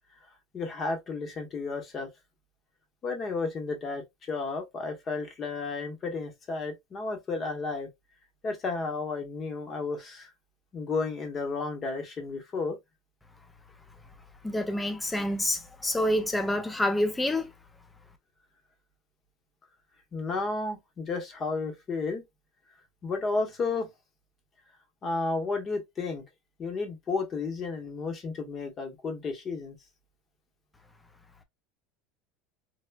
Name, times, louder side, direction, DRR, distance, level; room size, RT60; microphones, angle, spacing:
voice 1, 0.5-2.1 3.0-7.9 8.4-10.3 10.7-12.8 20.1-22.2 23.0-23.9 25.0-26.2 26.6-29.8, left 3 dB, 30° left, 0.8 m, -32 dB
voice 2, 14.4-17.5, left 1 dB, 10° left, 0.3 m, -27 dB
3.3 x 2.1 x 2.2 m
supercardioid pair, 140°, 0 cm